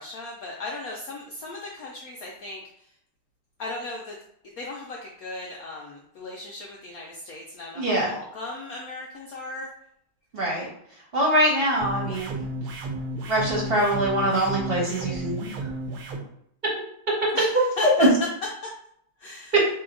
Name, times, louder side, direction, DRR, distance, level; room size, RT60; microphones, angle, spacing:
voice 1, 0.0-2.6 3.6-4.1 4.6-9.7 17.3-17.9 19.2-19.5, left 2 dB, 80° left, -2 dB, 0.7 m, -37 dB
voice 2, 7.7-8.1 10.3-10.7 11.1-12.4 13.3-15.5 17.8-18.1 19.5-19.6, right 1 dB, 35° right, -4 dB, 1.2 m, -23 dB
sound 1, 11.8-16.2, right 1 dB, 85° right, 1.6 m, -33 dB
4.1 x 2.9 x 3.8 m, 0.71 s
omnidirectional pair, 2.3 m